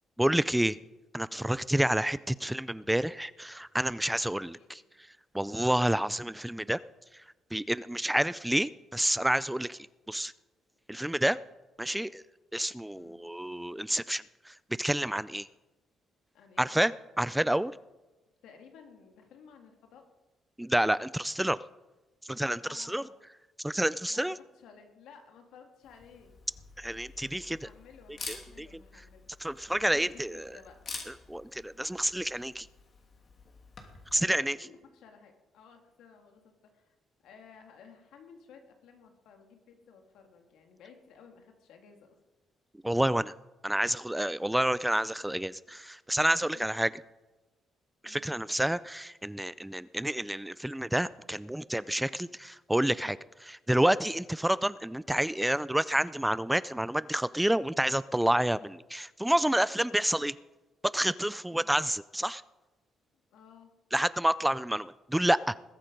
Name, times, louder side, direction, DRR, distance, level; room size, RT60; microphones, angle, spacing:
voice 1, 0.2-0.8 1.1-4.8 5.3-6.8 7.5-9.8 10.1-10.3 10.9-11.4 11.8-12.2 12.5-15.5 16.6-17.8 20.6-21.6 22.3-23.0 23.6-24.4 26.8-27.7 28.6-28.7 29.4-30.4 31.3-32.7 34.1-34.6 42.8-43.3 43.6-46.9 48.0-60.4 60.8-62.4 63.9-65.5, right 1 dB, 5° right, 18 dB, 0.4 m, -29 dB
voice 2, 4.0-4.9 11.9-12.1 13.0-13.3 16.3-16.7 18.4-20.1 22.3-23.1 24.0-26.4 27.5-29.3 29.8-30.9 34.1-37.0 37.2-42.2 46.5-46.9 48.1-48.3 61.5-61.7 63.3-63.7, left 6 dB, 85° left, 4 dB, 2.2 m, -55 dB
Camera, 25.8-34.2, left 4 dB, 50° left, 2.8 m, -48 dB
20.5 x 8.4 x 5.3 m, 1.1 s
cardioid pair, 90°, 0 cm